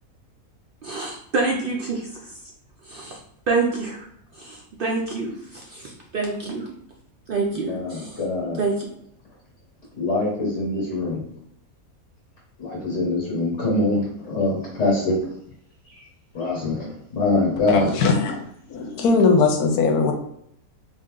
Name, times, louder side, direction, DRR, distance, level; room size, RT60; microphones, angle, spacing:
voice 1, 0.8-2.3 2.9-3.2 3.5-4.1 4.4-6.7 7.3-8.2 8.6-8.9, right 3 dB, 60° right, -1 dB, 0.6 m, -27 dB
voice 2, 7.5-8.6 9.9-11.2 12.6-15.2 16.3-17.9, left 2 dB, 55° left, -4 dB, 1.5 m, -24 dB
voice 3, 17.7-18.4 18.7-20.1, left 4 dB, 85° left, 4 dB, 1.2 m, -19 dB
3.7 x 2.7 x 3.6 m, 0.71 s
omnidirectional pair, 1.6 m